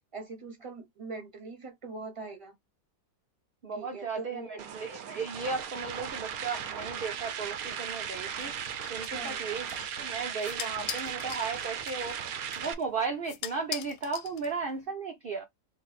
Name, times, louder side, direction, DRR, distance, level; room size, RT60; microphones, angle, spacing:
voice 1, 0.1-2.6 3.7-4.6 9.1-9.4, right 3 dB, 20° right, 1.0 m, -42 dB
voice 2, 3.6-8.5 8.9-9.7 9.9-12.2 12.6-15.4, right 4 dB, 50° right, 0.7 m, -35 dB
sound 1, 4.6-12.7, right 8 dB, 70° right, 1.0 m, -37 dB
sound 2, 8.4-14.9, left 11 dB, 70° left, 0.9 m, -43 dB
3.5 x 2.6 x 4.1 m
omnidirectional pair, 1.7 m